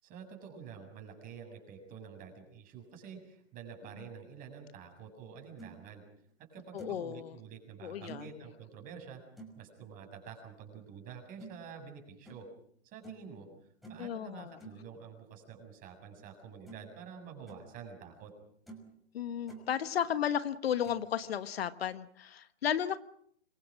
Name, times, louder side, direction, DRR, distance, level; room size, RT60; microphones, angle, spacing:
voice 1, 0.0-6.0 6.4-9.2 9.6-12.5 12.8-13.5 13.9-18.3, right 6 dB, 25° right, 4 dB, 7.3 m, -48 dB
sound 1, 5.3-5.7 6.3-6.4 6.8-7.1 8.1-8.3 9.4-9.6 11.4-11.5 12.2-12.5 13.0-13.3 13.8-14.1 14.6-14.8 16.2-16.3 16.6-16.9 17.3-17.6 18.2-18.3 18.7-18.9 19.2-19.7 20.8-21.1, right 2 dB, ahead, 5.8 m, -50 dB
voice 2, 6.7-7.4 7.8-8.2 14.0-14.6 19.1-23.0, left 9 dB, 60° left, 12 dB, 1.3 m, -34 dB
26.5 x 23.0 x 6.3 m, 0.64 s
hypercardioid pair, 140°, 35 cm